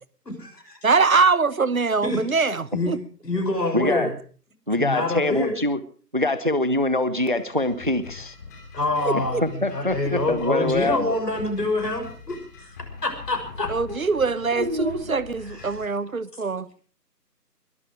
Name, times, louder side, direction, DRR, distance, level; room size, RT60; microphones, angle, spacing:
voice 1, 0.2-0.8 2.0-2.2 2.7-3.0 3.2-4.1 4.8-5.6 8.7-12.8 13.0-13.7 15.5-15.8, left 2 dB, 75° left, 6.6 m, -26 dB
voice 2, 0.8-3.0 9.0-9.4 13.7-16.7, right 4 dB, 55° right, 1.1 m, -23 dB
voice 3, 3.7-4.1 4.7-5.8 6.1-8.3 9.1-11.2 13.6-14.0 14.6-15.2, left 1 dB, 30° right, 0.7 m, -24 dB
sound 1, 7.1-15.9, left 4 dB, 10° left, 2.6 m, -42 dB
22.0 x 12.5 x 4.8 m
figure-of-eight pair, 165°, 49 cm